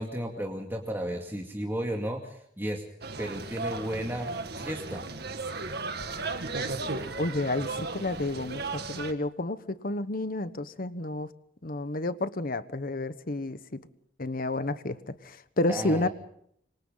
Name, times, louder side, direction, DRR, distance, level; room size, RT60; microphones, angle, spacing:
voice 1, 0.0-2.8 3.2-4.3 4.6-5.0 15.7-16.1, equal, 15° right, 0 dB, 2.4 m, -33 dB
sound 1, 3.0-9.1, right 3 dB, 60° right, 2.0 m, -35 dB
voice 2, 7.2-11.3 11.6-13.8 14.2-16.1, left 2 dB, 50° left, 13 dB, 1.2 m, -30 dB
27.0 x 25.0 x 4.0 m, 0.69 s
head